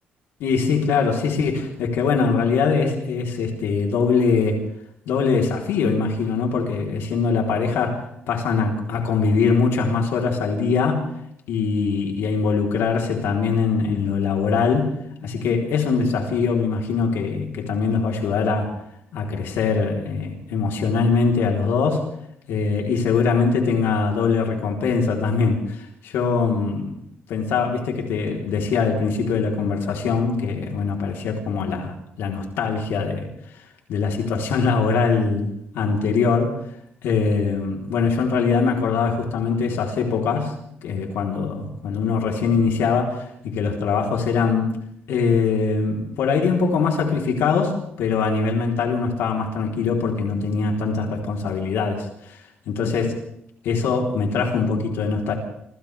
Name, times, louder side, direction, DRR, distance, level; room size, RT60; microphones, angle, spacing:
voice 1, 0.4-4.6 5.1-11.1 11.5-18.8 19.1-22.1 22.5-27.0 27.3-33.3 33.9-36.6 37.0-40.6 40.8-44.7 45.1-52.4 52.7-53.2 53.6-55.3, left 5 dB, 90° left, 1 dB, 3.9 m, -22 dB
28.0 x 26.5 x 3.5 m, 0.72 s
cardioid pair, 175°, 4 cm